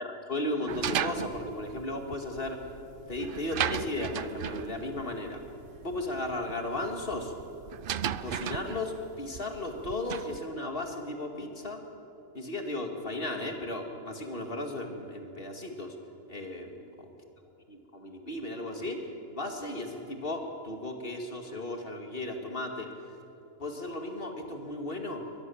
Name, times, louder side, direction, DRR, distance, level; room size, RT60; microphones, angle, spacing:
voice 1, 0.0-2.6 3.1-5.4 5.8-7.3 8.2-11.8 12.3-15.9 16.3-17.1 17.7-19.0 19.3-22.9 23.6-25.2, left 2 dB, 40° left, 4 dB, 2.4 m, -35 dB
sound 1, 0.7-10.4, right 9 dB, 60° right, 0.5 m, -36 dB
23.0 x 21.0 x 7.1 m, 3.0 s
omnidirectional pair, 1.5 m